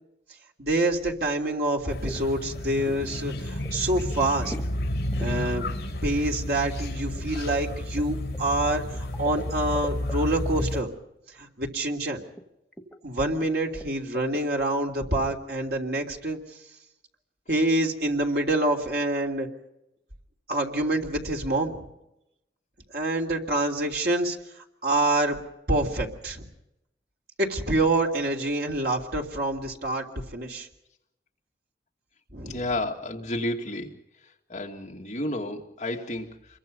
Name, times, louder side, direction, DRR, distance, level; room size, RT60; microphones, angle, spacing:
voice 1, 0.6-4.5 5.2-5.7 6.0-10.9 11.4-12.2 13.0-16.4 17.5-19.5 20.5-21.8 22.9-24.4 24.8-25.4 25.7-26.5 27.4-30.7 32.3-32.6, right 1 dB, 55° right, 1 dB, 3.1 m, -26 dB
sound 1, 1.8-2.2 2.5-3.1 3.3-3.8 4.1-4.7 5.1-5.3 6.8-10.2 10.5-10.8 12.4-12.5 12.7-13.0 13.4-13.5 13.8-13.9 14.1-14.4 14.9-15.4, left 1 dB, 5° left, 1.4 m, -41 dB
sound 2, 1.9-10.8, left 1 dB, 55° left, 5.0 m, -31 dB
voice 2, 32.5-34.0 34.2-36.6, left 1 dB, 40° left, 1 dB, 2.3 m, -32 dB
28.0 x 22.5 x 5.4 m, 0.88 s
head